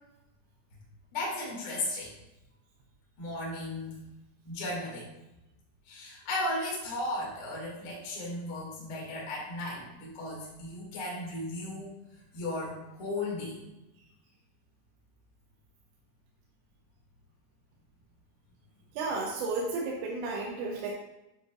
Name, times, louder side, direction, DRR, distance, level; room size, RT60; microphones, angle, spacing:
voice 1, 1.1-2.1 3.2-4.0 4.5-5.1 5.9-12.0 12.3-13.6, left 2 dB, 40° left, -5 dB, 2.1 m, -35 dB
voice 2, 19.0-20.9, right 3 dB, 85° right, -1 dB, 3.1 m, -33 dB
8.9 x 6.4 x 2.4 m, 0.93 s
omnidirectional pair, 5.0 m